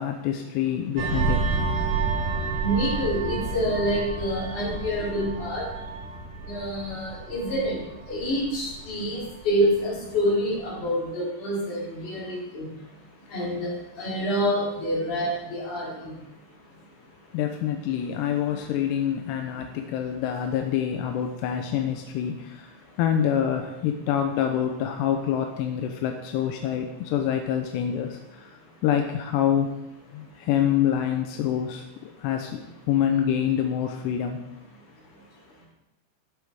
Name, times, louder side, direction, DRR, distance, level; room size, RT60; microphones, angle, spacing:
voice 1, 0.0-1.4 17.3-22.7 23.0-29.7 30.1-34.4, left 9 dB, 85° left, 4 dB, 2.5 m, -26 dB
sound 1, 1.0-10.0 10.4-10.6, right 4 dB, 65° right, 2.8 m, -30 dB
voice 2, 2.6-5.6 6.5-7.8 8.1-12.7 13.3-16.1, equal, 45° left, -5 dB, 4.2 m, -27 dB
13.5 x 8.1 x 3.5 m, 0.92 s
omnidirectional pair, 5.3 m